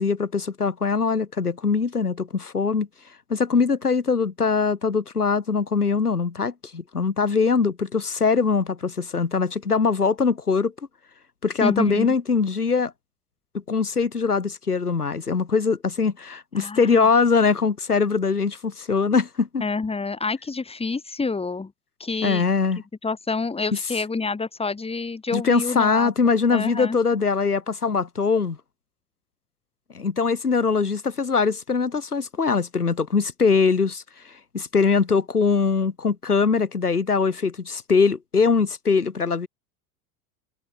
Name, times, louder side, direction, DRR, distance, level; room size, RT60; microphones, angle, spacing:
voice 1, 0.0-2.9 3.3-10.7 11.4-12.9 13.7-19.6 22.2-22.8 23.7-23.8 25.3-28.6 29.9-39.5, left 5 dB, 90° left, 1.4 m, -22 dB
voice 2, 11.6-12.1 16.5-17.1 19.6-21.7 22.0-22.4 23.0-26.1 26.5-27.0, left 4 dB, 15° left, 2.9 m, -28 dB
figure-of-eight pair, 75°, 44 cm